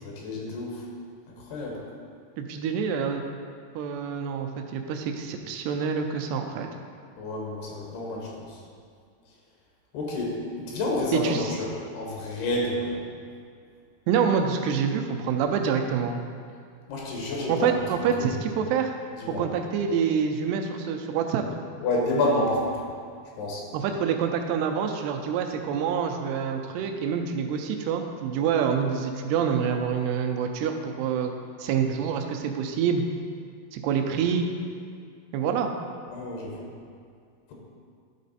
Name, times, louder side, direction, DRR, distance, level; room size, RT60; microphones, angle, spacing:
voice 1, 0.0-0.8 1.4-1.8 7.2-8.6 9.9-13.0 16.9-17.7 18.1-18.3 19.2-19.5 21.8-22.8 23.4-23.6 36.1-36.7, left 1 dB, 80° left, -2 dB, 3.0 m, -29 dB
voice 2, 2.4-3.2 3.8-6.7 11.1-11.6 14.1-16.2 17.5-18.9 19.4-21.4 23.7-31.3 31.6-33.0 33.7-34.5 35.3-35.7, right 7 dB, 85° right, 4 dB, 2.6 m, -26 dB
11.5 x 4.2 x 4.1 m, 2.3 s
omnidirectional pair, 4.7 m